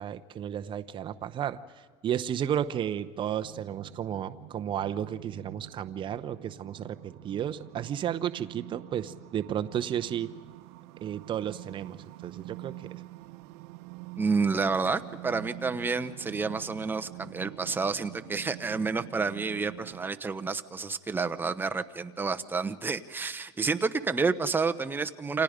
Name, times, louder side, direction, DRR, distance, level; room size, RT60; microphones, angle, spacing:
voice 1, 0.0-1.6 2.0-10.3 11.0-12.0 12.2-13.0, right 10 dB, 35° right, 10 dB, 0.9 m, -33 dB
sound 1, 3.4-20.1, right 18 dB, 80° right, 0.8 m, -46 dB
voice 2, 14.2-25.4, right 4 dB, 15° right, 9 dB, 1.0 m, -29 dB
29.5 x 26.5 x 5.1 m, 1.5 s
supercardioid pair, 125°, 15 cm